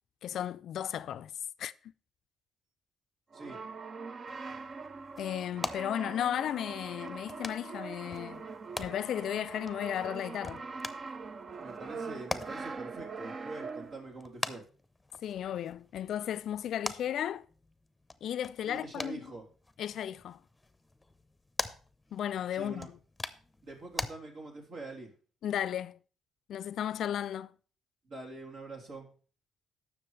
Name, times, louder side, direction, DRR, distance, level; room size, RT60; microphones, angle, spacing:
voice 1, 0.2-1.3 1.6-1.7 5.2-8.5 8.8-10.6 15.2-17.4 18.2-19.3 19.8-20.4 22.1-23.0 25.4-26.0 26.5-27.5, left 10 dB, 70° left, 0.4 m, -34 dB
Brass instrument, 3.3-14.1, right 4 dB, 45° right, 0.6 m, -42 dB
sound 1, 4.3-24.1, left 2 dB, 10° left, 0.7 m, -44 dB
voice 2, 11.6-14.6 18.7-19.4 22.5-22.9 23.6-25.1 28.1-29.1, right 2 dB, 70° right, 3.5 m, -44 dB
18.0 x 6.2 x 3.3 m
cardioid pair, 90°, 0 cm